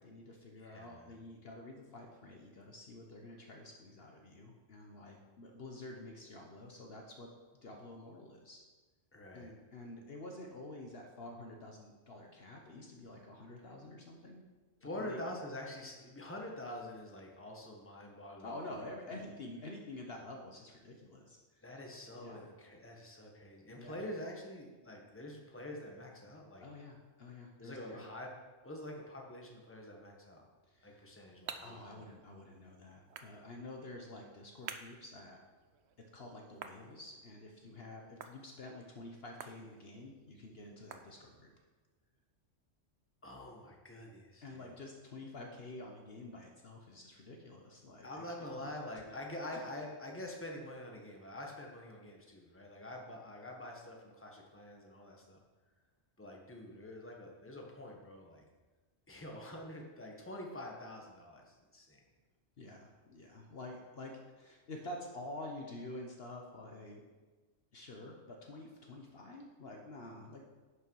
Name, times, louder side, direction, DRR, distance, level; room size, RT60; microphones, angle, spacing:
voice 1, 0.0-7.3 7.6-8.6 9.3-14.4 15.0-15.2 18.4-21.6 22.1-22.5 23.7-24.1 26.6-28.1 30.6-31.1 31.6-35.4 36.1-41.5 44.4-48.7 49.1-49.2 49.5-49.6 62.6-67.0 67.7-70.4, left 2 dB, 55° left, 1 dB, 1.2 m, -49 dB
voice 2, 0.6-1.2 9.1-9.5 14.8-18.5 19.1-19.2 21.6-26.6 27.6-28.3 28.6-30.4 30.8-31.8 43.2-44.7 48.0-55.4 56.2-58.4 59.1-62.0, left 1 dB, 10° left, 0 dB, 1.3 m, -46 dB
sound 1, 30.7-41.6, right 7 dB, 65° right, 0.9 m, -53 dB
10.5 x 6.7 x 4.7 m, 1.3 s
omnidirectional pair, 1.3 m